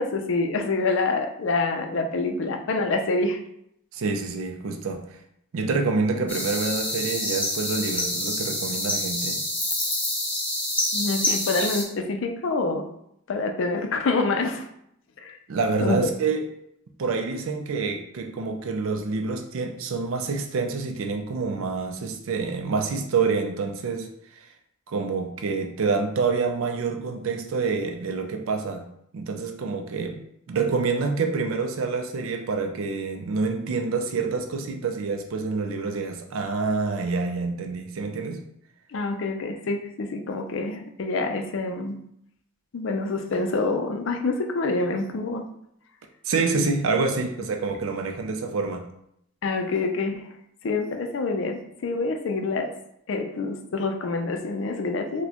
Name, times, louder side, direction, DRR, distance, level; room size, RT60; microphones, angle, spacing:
voice 1, 0.0-3.4 10.9-12.9 13.3-14.6 15.2-15.4 15.8-16.1 38.9-42.0 42.7-45.5 49.4-50.3 50.6-52.7 53.1-55.3, left 3 dB, 60° left, 5 dB, 0.4 m, -26 dB
voice 2, 3.9-5.1 5.5-9.4 15.5-16.4 17.0-24.5 24.9-30.2 30.5-38.4 46.2-48.9, right 4 dB, 70° right, 4 dB, 0.4 m, -27 dB
sound 1, 6.3-11.8, left 1 dB, 10° left, 0.5 m, -27 dB
4.1 x 2.2 x 2.9 m, 0.75 s
head